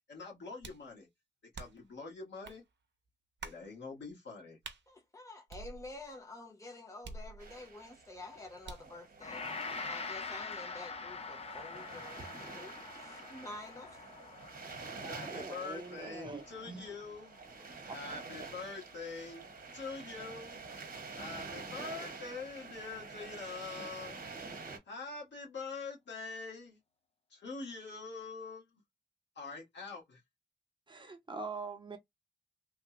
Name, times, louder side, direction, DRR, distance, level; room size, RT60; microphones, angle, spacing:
voice 1, 0.1-1.1 1.5-2.6 3.4-4.6 15.0-17.4 17.9-19.5 19.7-20.6 21.1-24.2 24.9-26.8 27.3-28.8 29.3-30.2, left 4 dB, 75° left, 1.4 m, -44 dB
sound 1, 0.6-0.9 1.5-1.9 2.4-2.6 3.4-3.7 4.6-4.8 5.5-6.1 7.0-7.7 8.6-9.0, right 4 dB, 75° right, 0.6 m, -47 dB
voice 2, 4.9-14.0, left 2 dB, 15° left, 0.8 m, -49 dB
sound 2, 7.4-24.8, right 4 dB, 50° right, 1.0 m, -48 dB
Gong, 9.2-18.4, left 4 dB, 35° left, 0.4 m, -45 dB
voice 3, 15.2-16.9 17.9-18.0 30.9-32.0, right 3 dB, 25° right, 0.6 m, -44 dB
3.2 x 2.1 x 2.9 m
wide cardioid pair, 155°, 19 cm